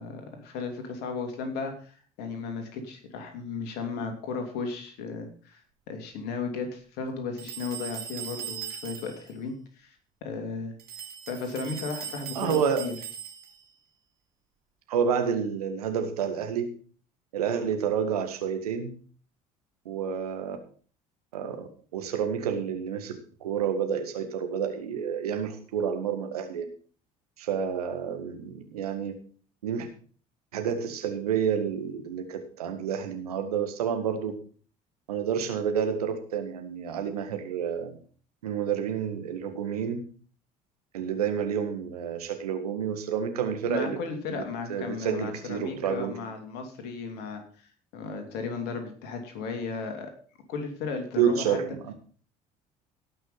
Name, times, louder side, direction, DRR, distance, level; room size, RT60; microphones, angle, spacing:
voice 1, 0.0-5.6 5.9-10.0 10.2-10.7 11.3-12.9 43.6-50.1 50.5-51.6, left 4 dB, 60° left, 5 dB, 2.9 m, -35 dB
sound 1, 7.4-9.3 10.8-13.7, right 9 dB, 50° right, 3.5 m, -39 dB
voice 2, 12.4-12.9 14.9-16.7 17.3-18.9 19.9-20.6 21.3-26.7 27.4-29.1 29.6-29.9 30.5-34.4 35.1-38.0 38.4-40.0 40.9-44.0 44.7-46.2 51.2-51.9, right 7 dB, 75° right, 6 dB, 1.8 m, -29 dB
17.5 x 6.1 x 5.5 m, 0.43 s
figure-of-eight pair, 55°, 20 cm